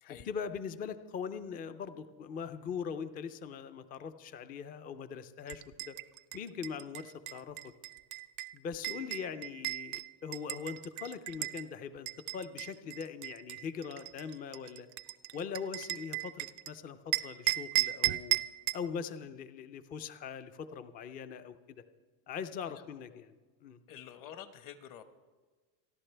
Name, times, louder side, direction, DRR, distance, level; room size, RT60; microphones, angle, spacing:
voice 1, 0.1-5.9 6.3-7.7 8.5-14.9 15.3-18.4 18.7-21.8 22.3-23.3 23.6-23.8, left 6 dB, 20° left, 12 dB, 0.4 m, -41 dB
sound 1, 5.5-11.6 12.1-16.7 17.1-18.9, right 20 dB, 45° right, 0.4 m, -36 dB
voice 2, 22.6-23.2 23.9-25.0, left 10 dB, 45° left, 10 dB, 1.1 m, -49 dB
28.0 x 11.0 x 3.3 m, 1.4 s
cardioid pair, 155°, 45 cm